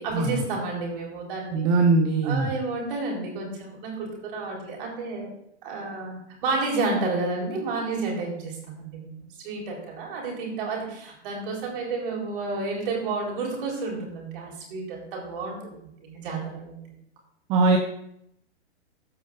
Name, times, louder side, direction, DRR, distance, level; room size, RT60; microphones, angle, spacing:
voice 1, 0.0-1.7 2.2-5.3 5.6-15.6 16.0-17.0, right 3 dB, 50° right, -1 dB, 4.1 m, -31 dB
voice 2, 1.5-2.5 17.5-17.8, right 3 dB, 15° right, 4 dB, 0.4 m, -21 dB
15.0 x 5.0 x 3.7 m, 0.74 s
hypercardioid pair, 135°, 35 cm